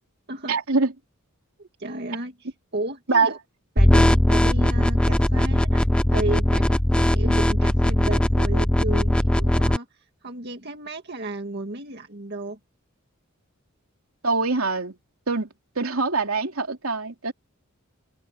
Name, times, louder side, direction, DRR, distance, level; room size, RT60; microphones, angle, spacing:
voice 1, 0.5-0.9 3.1-3.3 14.2-14.9 15.3-15.5 15.7-17.3, right 4 dB, 75° right, 3.3 m, -23 dB
voice 2, 1.6-3.4 3.8-5.8 6.1-12.6, right 2 dB, 50° right, 2.0 m, -33 dB
sound 1, 3.8-9.8, equal, 5° left, 0.5 m, -19 dB
head